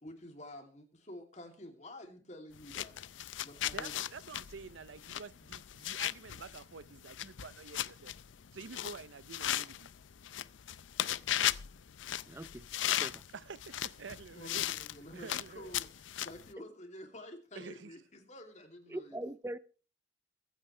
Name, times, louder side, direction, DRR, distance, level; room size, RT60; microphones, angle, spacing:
voice 1, 0.0-3.1 3.4-4.1 14.3-19.2, left 1 dB, 40° left, 2.7 m, -50 dB
sound 1, 2.5-16.5, left 12 dB, 85° left, 0.5 m, -37 dB
voice 2, 3.7-8.1 8.5-9.9 13.3-14.7 15.1-15.8 17.5-18.0, right 5 dB, 85° right, 0.6 m, -48 dB
voice 3, 12.3-13.2 18.9-19.6, right 1 dB, 15° right, 0.5 m, -42 dB
24.0 x 9.0 x 3.2 m
head